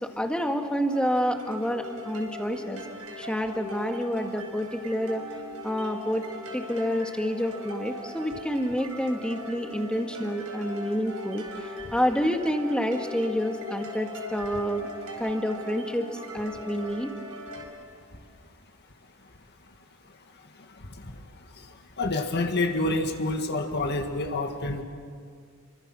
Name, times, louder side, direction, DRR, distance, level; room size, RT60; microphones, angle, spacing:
voice 1, 0.0-2.8 3.2-5.2 5.6-6.2 6.5-14.9 15.2-17.1, equal, 5° left, 3 dB, 1.8 m, -28 dB
sound 1, 0.9-17.6, left 1 dB, 80° right, 4.8 m, -40 dB
voice 2, 22.0-24.8, left 2 dB, 50° left, 4 dB, 1.8 m, -27 dB
30.0 x 24.0 x 6.2 m, 2.1 s
head